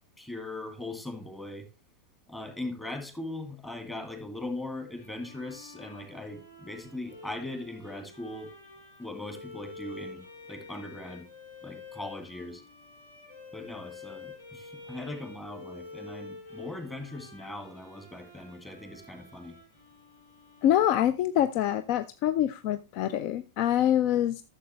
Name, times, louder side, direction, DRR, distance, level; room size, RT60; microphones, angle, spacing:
voice 1, 0.2-1.7 2.3-8.5 9.0-10.2 10.5-11.3 11.6-12.6 13.5-19.6, left 2 dB, 10° left, 2.3 m, -39 dB
Bowed string instrument, 4.9-21.5, left 3 dB, 75° left, 6.9 m, -48 dB
voice 2, 20.6-24.4, left 11 dB, 45° left, 0.5 m, -25 dB
13.0 x 7.1 x 3.3 m
figure-of-eight pair, 90°, 0 cm